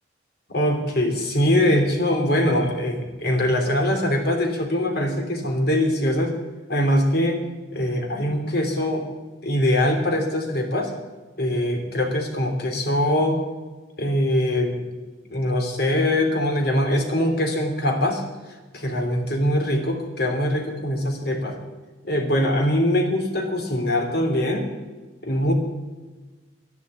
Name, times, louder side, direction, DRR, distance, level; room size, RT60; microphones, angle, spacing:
voice 1, 0.5-6.3 6.7-7.4 7.7-9.1 9.4-10.9 11.4-13.4 14.0-14.8 15.3-18.2 18.7-21.6 22.0-24.7 25.2-25.5, left 1 dB, 55° left, 2 dB, 3.2 m, -22 dB
12.0 x 11.5 x 8.4 m, 1.3 s
head